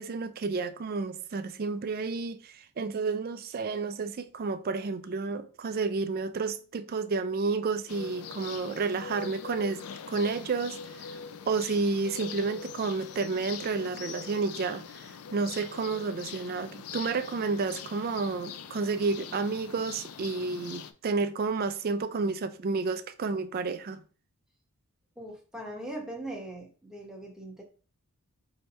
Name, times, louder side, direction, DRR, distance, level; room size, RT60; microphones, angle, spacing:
voice 1, 0.0-10.8 11.5-15.1 15.3-24.0, right 4 dB, 40° right, 0.3 m, -31 dB
sound 1, 7.9-20.9, left 6 dB, 75° left, 0.4 m, -43 dB
voice 2, 25.2-27.6, right 1 dB, 5° right, 0.9 m, -40 dB
3.2 x 2.8 x 4.2 m
head